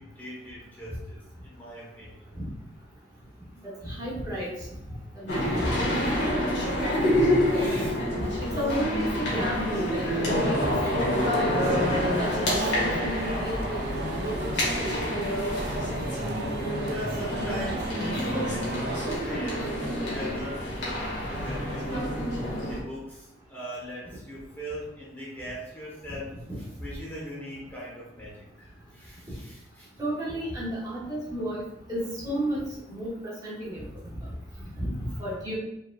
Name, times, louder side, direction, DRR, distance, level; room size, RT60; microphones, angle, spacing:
voice 1, 0.0-2.3 7.5-8.0 15.4-15.5 15.9-16.1 16.5-22.2 22.6-29.9, equal, 10° left, -6 dB, 1.1 m, -40 dB
voice 2, 3.8-4.5 5.1-7.8 8.4-11.3 12.0-13.8 14.2-14.5 14.8-15.0 30.0-31.6 31.9-32.6 32.9-33.1 33.4-33.9 34.8-34.9 35.2-35.6, equal, 20° right, -7 dB, 1.3 m, -32 dB
sound 1, 5.3-22.8, equal, 75° left, 1.6 m, -28 dB
sound 2, 10.3-19.2, right 2 dB, 60° right, 0.7 m, -36 dB
4.9 x 4.0 x 2.3 m, 0.86 s
head